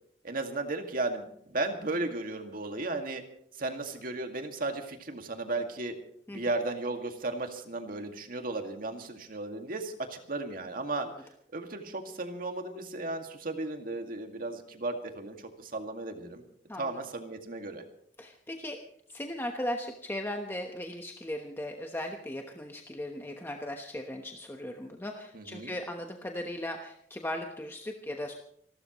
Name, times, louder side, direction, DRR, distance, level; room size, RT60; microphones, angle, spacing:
voice 1, 0.2-3.2 3.6-6.0 6.3-11.1 11.5-16.4 16.8-17.8 25.3-25.8, right 2 dB, 55° right, 5 dB, 2.1 m, -35 dB
voice 2, 18.2-18.8 19.1-28.3, left 1 dB, 15° left, 2 dB, 1.1 m, -37 dB
29.0 x 13.0 x 3.1 m, 0.68 s
head